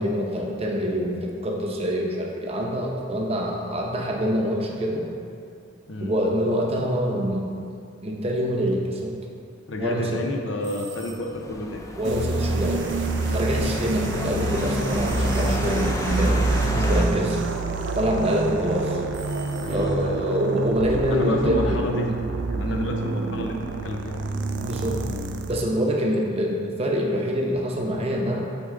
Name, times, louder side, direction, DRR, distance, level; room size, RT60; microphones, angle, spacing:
voice 1, 0.0-5.1 6.0-7.5 8.0-9.1 9.8-10.2 12.0-12.9 13.3-15.9 16.2-16.4 16.7-17.4 18.0-19.0 19.7-21.8 22.6-22.8 24.6-25.0 25.5-28.4, equal, 30° right, -1 dB, 0.7 m, -25 dB
voice 2, 9.7-11.8 17.1-17.3 19.6-20.1 21.1-22.1 22.5-24.2, left 1 dB, 75° left, 2 dB, 0.7 m, -30 dB
sound 1, 10.6-11.5 15.1-16.0 19.1-20.3, right 5 dB, 90° right, 1.1 m, -45 dB
sound 2, 11.1-17.1, left 1 dB, 15° left, 0.4 m, -30 dB
sound 3, 12.0-25.7, right 3 dB, 65° right, 0.4 m, -27 dB
8.1 x 3.8 x 3.7 m, 2.4 s
head